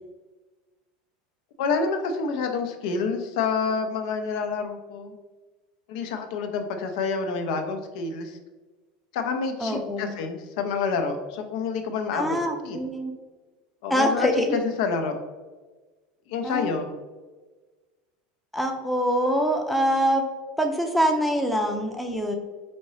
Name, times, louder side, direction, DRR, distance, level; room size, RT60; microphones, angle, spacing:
voice 1, 1.6-5.1 5.9-8.4 9.1-12.4 12.6-12.8 13.8-15.2 16.3-16.9, left 5 dB, 75° left, 6 dB, 0.6 m, -28 dB
voice 2, 9.6-10.1 12.1-13.1 13.9-14.6 16.4-16.7 18.5-20.2 20.6-22.3, equal, ahead, 3 dB, 0.5 m, -24 dB
5.1 x 2.8 x 3.1 m, 1.3 s
supercardioid pair, 130°, 4 cm